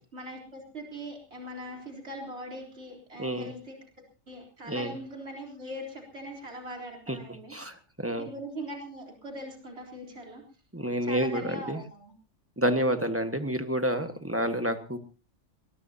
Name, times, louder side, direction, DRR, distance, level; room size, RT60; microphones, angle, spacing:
voice 1, 0.0-3.8 4.3-7.5 8.2-10.4 11.0-12.1, equal, 60° right, 0 dB, 4.1 m, -41 dB
voice 2, 3.2-3.5 4.7-4.9 7.1-7.2 7.5-8.3 10.7-11.8 12.6-15.0, equal, 10° right, 7 dB, 1.5 m, -29 dB
22.0 x 20.0 x 2.9 m, 0.35 s
omnidirectional pair, 1.3 m